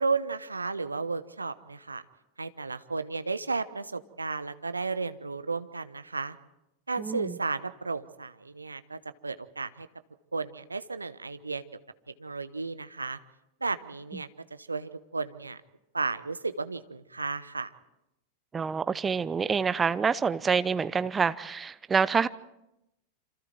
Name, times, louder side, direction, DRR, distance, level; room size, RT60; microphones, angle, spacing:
voice 1, 0.0-2.0 2.4-6.4 6.9-9.9 10.3-11.6 12.1-13.2 13.6-14.3 14.6-15.6 15.9-17.7, right 4 dB, 80° right, 0.9 m, -33 dB
voice 2, 7.0-7.4 18.5-22.3, right 5 dB, 15° right, 0.8 m, -27 dB
27.0 x 26.5 x 4.6 m
figure-of-eight pair, 90°, 0 cm